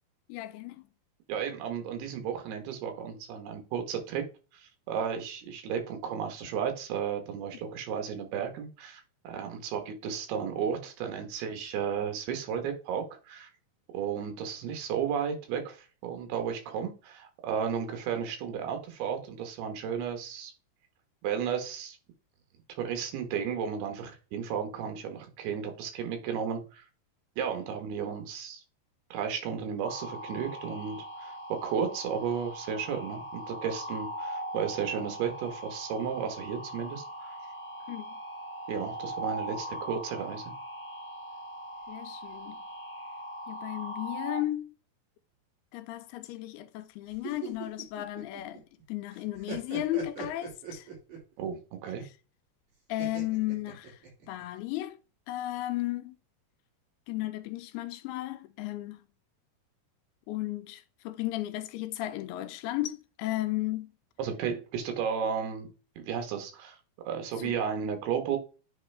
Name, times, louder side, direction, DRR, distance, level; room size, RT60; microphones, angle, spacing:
voice 1, 0.3-0.8 37.9-38.1 41.9-42.6 43.5-44.7 45.7-48.6 48.9-50.9 52.9-54.0 54.3-55.0 55.3-56.2 57.1-59.0 60.3-63.9 67.4-67.5, left 16 dB, 85° left, 2.5 m, -34 dB
voice 2, 1.3-4.2 4.5-13.5 13.9-20.5 21.2-22.0 22.8-26.9 27.4-28.6 29.1-37.3 38.7-40.5 51.4-52.1 64.2-65.7 66.0-66.8 67.1-68.4, right 7 dB, 80° right, 3.2 m, -33 dB
sound 1, 29.8-44.4, right 1 dB, 45° left, 0.4 m, -40 dB
sound 2, 47.1-48.8 49.1-51.3 53.0-54.4, right 6 dB, 50° right, 3.9 m, -41 dB
9.6 x 3.4 x 3.4 m
omnidirectional pair, 4.5 m